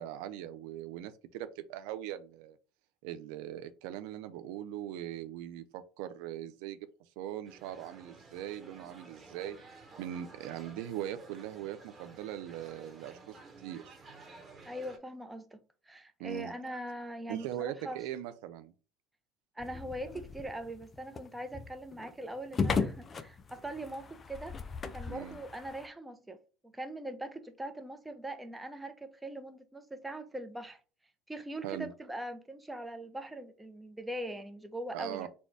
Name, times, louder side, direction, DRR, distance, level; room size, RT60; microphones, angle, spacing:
voice 1, 0.0-2.6 3.0-6.8 7.2-9.6 10.0-13.2 13.6-14.0 16.2-16.5 17.3-18.7 25.1-25.4 31.6-31.9 34.9-35.3, right 12 dB, 75° right, 0.4 m, -40 dB
sound 1, 7.4-15.0, right 3 dB, 25° right, 1.2 m, -53 dB
voice 2, 14.7-18.0 19.6-24.6 24.9-26.4 26.6-30.8 31.3-35.3, right 1 dB, 10° right, 0.7 m, -41 dB
sound 2, 19.6-25.9, left 5 dB, 30° left, 0.5 m, -37 dB
4.2 x 2.3 x 4.6 m
supercardioid pair, 90°, 0 cm